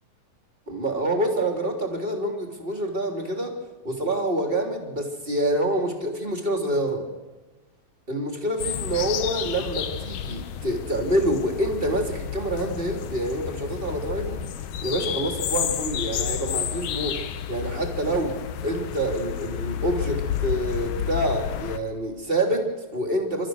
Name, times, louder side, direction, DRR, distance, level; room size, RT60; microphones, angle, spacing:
voice 1, 0.7-3.5 3.8-7.0 8.1-14.4 14.8-17.2 17.5-18.3 18.6-23.5, right 1 dB, 15° right, 2 dB, 3.2 m, -27 dB
sound 1, 8.6-21.8, left 9 dB, 75° left, 2.7 m, -31 dB
30.0 x 14.0 x 6.5 m, 1.2 s
omnidirectional pair, 4.0 m